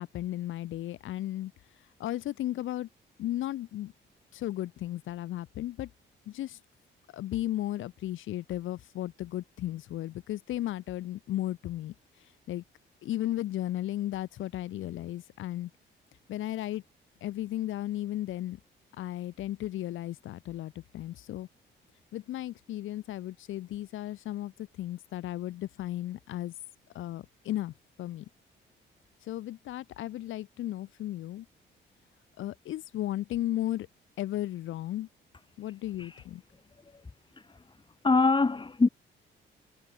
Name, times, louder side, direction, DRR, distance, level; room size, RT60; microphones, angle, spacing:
voice 1, 0.0-2.9 3.2-3.9 4.3-5.9 6.3-6.6 7.1-12.6 13.0-15.7 16.3-16.8 17.2-18.6 19.0-21.5 22.1-26.5 26.9-28.3 29.2-31.5 32.4-33.9 34.2-35.1 35.6-36.4, left 14 dB, 80° left, 2.0 m, -35 dB
voice 2, 37.3-37.8 38.0-38.9, left 3 dB, 25° left, 3.7 m, -25 dB
cardioid pair, 90°, 20 cm